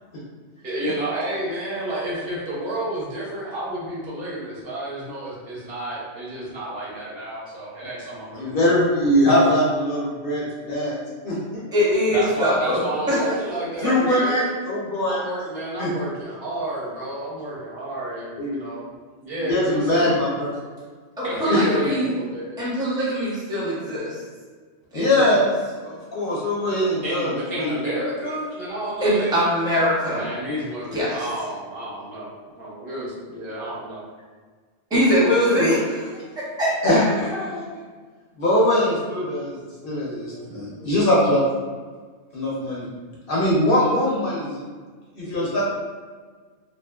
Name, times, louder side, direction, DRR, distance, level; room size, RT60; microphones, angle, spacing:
voice 1, 0.6-9.1 12.1-14.4 15.1-18.9 19.2-20.2 21.2-22.6 27.0-29.4 30.1-34.0, right 1 dB, 60° right, -7 dB, 1.0 m, -30 dB
voice 2, 8.4-11.0 11.2-11.6 13.8-15.3 15.8-15.9 18.4-18.6 19.4-20.6 21.5-21.6 24.9-25.5 25.8-27.8 35.4-35.7 36.8-37.7 38.4-41.5 42.3-42.9 43.3-44.6 45.2-45.6, left 1 dB, 60° left, -5 dB, 0.6 m, -22 dB
voice 3, 11.7-12.8 13.1-13.2 13.8-13.9 21.2-22.1 22.6-24.2 24.9-25.4 29.0-30.3 30.9-31.2 34.9-36.0 36.4-36.7, equal, 5° right, -8 dB, 0.5 m, -22 dB
2.6 x 2.4 x 2.2 m, 1.5 s
omnidirectional pair, 1.2 m